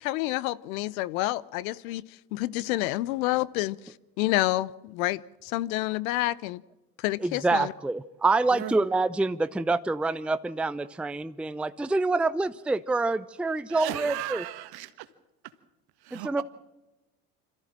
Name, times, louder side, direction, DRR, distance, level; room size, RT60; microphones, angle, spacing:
voice 1, 0.0-2.0 2.3-3.8 4.2-6.6 7.0-7.7, left 17 dB, 70° left, 20 dB, 0.8 m, -28 dB
voice 2, 7.2-14.4 16.1-16.4, right 3 dB, 5° right, 13 dB, 0.6 m, -26 dB
voice 3, 13.7-15.1 15.4-15.5 16.0-16.4, right 15 dB, 55° right, 12 dB, 1.7 m, -36 dB
26.0 x 14.0 x 7.6 m, 1.0 s
hypercardioid pair, 70°, 44 cm